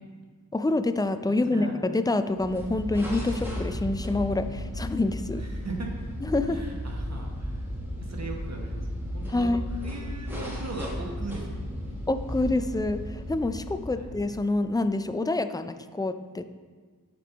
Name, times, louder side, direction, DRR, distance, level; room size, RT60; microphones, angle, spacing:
voice 1, 0.5-5.4 6.2-6.6 9.3-9.6 12.1-16.4, left 2 dB, 10° left, 10 dB, 0.3 m, -27 dB
voice 2, 1.3-1.7 5.4-6.1 6.5-7.7 8.0-9.5 9.8-12.0 13.9-14.1, right 2 dB, 45° right, 0 dB, 1.1 m, -39 dB
sound 1, 2.3-14.5, equal, 5° right, 1.6 m, -35 dB
9.4 x 4.7 x 4.0 m, 1.5 s
wide cardioid pair, 55°, 36 cm